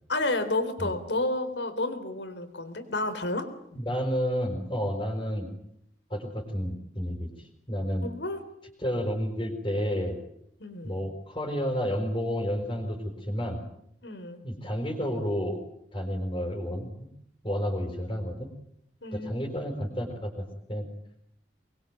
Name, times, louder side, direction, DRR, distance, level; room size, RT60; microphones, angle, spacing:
voice 1, 0.1-3.5 8.0-8.4 10.6-11.0 14.0-14.4 19.0-19.5, left 2 dB, 80° left, 10 dB, 3.8 m, -31 dB
voice 2, 3.7-5.5 6.1-8.1 8.8-10.2 10.8-13.6 14.4-15.6 15.9-16.9 17.4-18.5 19.1-20.8, equal, 25° left, 2 dB, 5.1 m, -31 dB
24.0 x 22.0 x 9.2 m, 0.73 s
head